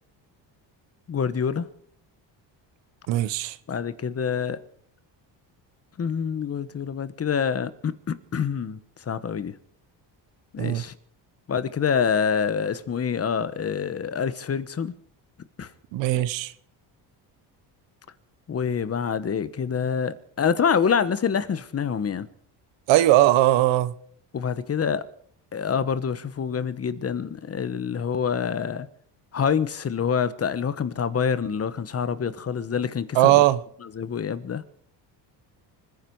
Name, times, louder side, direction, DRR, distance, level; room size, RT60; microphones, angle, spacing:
voice 1, 1.1-1.7 3.7-4.6 6.0-9.5 10.5-11.0 11.5-14.9 15.6-15.7 18.5-22.3 24.3-25.1 25.5-28.9 29.3-33.4 33.8-34.6, left 7 dB, 35° left, 1.2 m, -26 dB
voice 2, 3.1-3.6 10.6-10.8 15.9-16.5 22.9-23.9 33.1-33.6, right 15 dB, 90° right, 1.1 m, -19 dB
26.0 x 10.5 x 4.7 m
cardioid pair, 110°, 43 cm